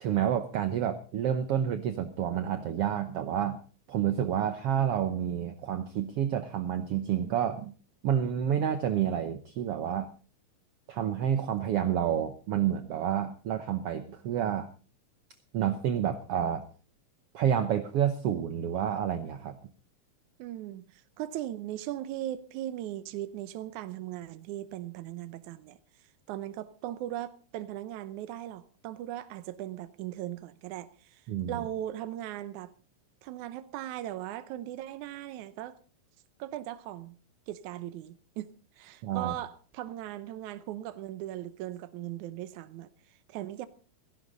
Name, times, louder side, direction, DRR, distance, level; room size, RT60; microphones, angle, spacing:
voice 1, 0.0-3.6 3.9-7.7 8.0-10.1 10.9-14.7 15.5-16.7 17.3-19.6 31.3-31.5 39.0-39.3, right 9 dB, 65° right, 1.7 m, -29 dB
voice 2, 20.4-32.7 33.2-35.8 36.4-37.2 37.5-43.7, right 13 dB, 80° right, 2.3 m, -39 dB
16.5 x 16.5 x 3.9 m
omnidirectional pair, 3.4 m